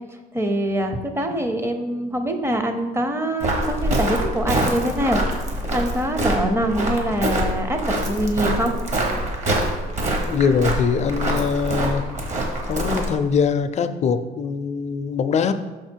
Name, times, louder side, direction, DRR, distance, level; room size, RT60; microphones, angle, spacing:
voice 1, 0.3-5.2 5.7-8.7, right 1 dB, 15° right, 6 dB, 0.6 m, -24 dB
Walk footsteps, 3.4-13.2, right 1 dB, 45° right, 1.3 m, -25 dB
voice 2, 10.3-12.0 12.7-15.5, left 6 dB, 40° left, 10 dB, 0.5 m, -22 dB
6.0 x 5.0 x 4.5 m, 1.2 s
cardioid pair, 110°, 17 cm